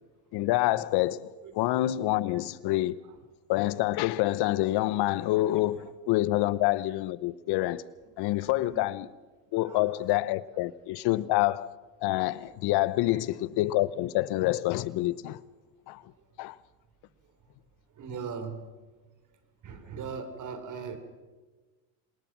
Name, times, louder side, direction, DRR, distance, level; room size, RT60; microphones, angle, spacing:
voice 1, 0.3-2.9 3.5-7.9 8.2-9.1 9.5-11.7 12.0-15.4 15.9-16.0 16.4-16.6, left 16 dB, 55° left, 0.9 m, -27 dB
voice 2, 8.4-8.8 9.7-9.8 13.0-13.2 18.0-18.6 19.6-21.0, right 6 dB, 40° right, 3.4 m, -39 dB
27.5 x 18.5 x 6.0 m
supercardioid pair, 125°, 48 cm